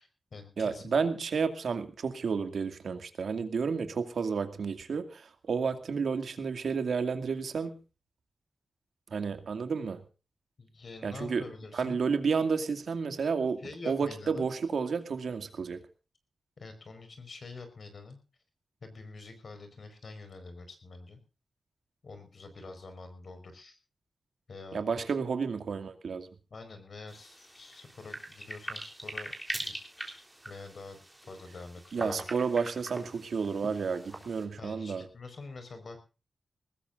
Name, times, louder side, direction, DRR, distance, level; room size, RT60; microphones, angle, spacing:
voice 1, 0.0-1.0 10.6-12.1 13.6-14.5 16.6-18.2 18.8-21.2 22.0-23.8 24.5-25.0 26.5-29.3 29.6-32.2 34.1-34.2 34.6-36.0, left 3 dB, 50° left, 8 dB, 4.9 m, -46 dB
voice 2, 0.6-7.7 9.1-10.0 11.0-11.4 11.7-15.8 24.7-26.3 31.9-35.0, right 5 dB, 75° right, 8 dB, 2.3 m, -31 dB
sound 1, 27.1-34.4, right 1 dB, 10° right, 3.7 m, -43 dB
22.0 x 19.5 x 2.6 m, 0.34 s
wide cardioid pair, 155°, 0 cm